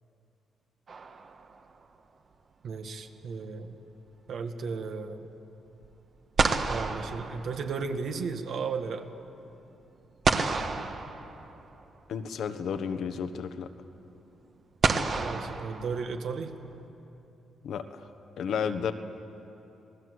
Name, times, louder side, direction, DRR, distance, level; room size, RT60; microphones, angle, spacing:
sound 1, 0.9-1.8 5.8-5.9 6.4-8.1 10.2-11.8 13.2-13.3 14.8-16.5, right 4 dB, 45° right, 1.4 m, -30 dB
voice 1, 2.6-3.8 4.3-5.3 6.7-9.1 15.2-16.5, right 5 dB, 65° right, 6 dB, 1.8 m, -34 dB
voice 2, 12.1-13.7 17.6-18.0 18.4-18.9, left 7 dB, 70° left, 9 dB, 1.3 m, -32 dB
27.0 x 19.0 x 8.1 m, 2.9 s
cardioid pair, 105°, 0 cm